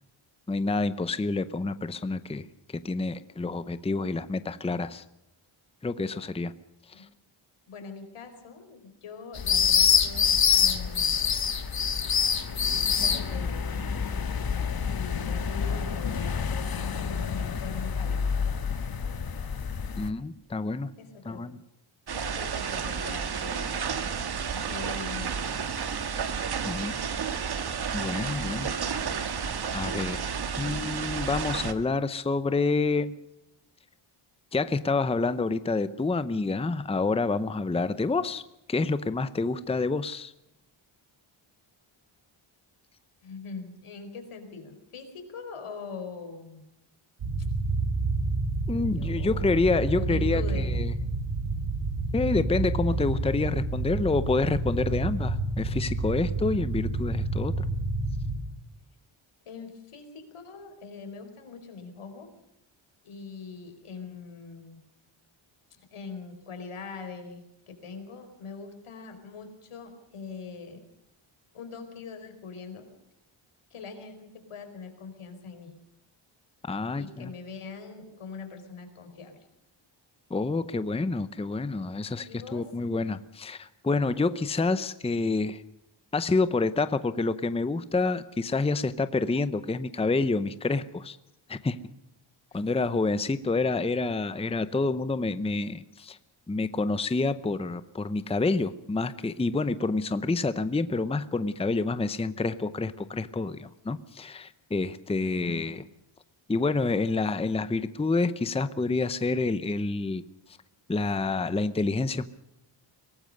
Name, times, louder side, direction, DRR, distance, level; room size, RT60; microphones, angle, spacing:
voice 1, 0.5-5.0 5.8-6.5 7.0-7.1 20.0-20.9 21.2-21.6 26.6-27.0 27.9-28.7 29.1-29.4 29.7-30.3 30.6-33.2 34.5-38.4 38.7-40.3 48.7-50.9 52.1-57.6 76.6-77.3 80.3-85.6 86.1-91.2 91.5-91.8 92.5-96.2 96.5-105.8 106.5-110.2 110.9-112.2, left 3 dB, 10° left, 13 dB, 0.7 m, -28 dB
voice 2, 7.7-11.2 13.0-13.8 14.8-18.2 21.0-21.4 22.1-23.7 24.5-26.0 26.7-27.0 28.2-29.0 43.2-46.6 48.9-50.8 59.5-62.3 63.0-64.8 65.9-67.4 67.7-70.9 71.5-72.9 73.7-75.7 77.0-79.4 82.3-82.6 92.5-92.6 105.2-105.7, left 5 dB, 90° left, 6 dB, 4.7 m, -42 dB
sound 1, 9.3-20.1, left 7 dB, 45° left, 1.5 m, -26 dB
sound 2, 22.1-31.7, right 6 dB, 50° right, 1.6 m, -31 dB
sound 3, 47.2-58.4, right 3 dB, 90° right, 3.6 m, -29 dB
23.0 x 18.5 x 6.6 m, 0.85 s
wide cardioid pair, 165°, 49 cm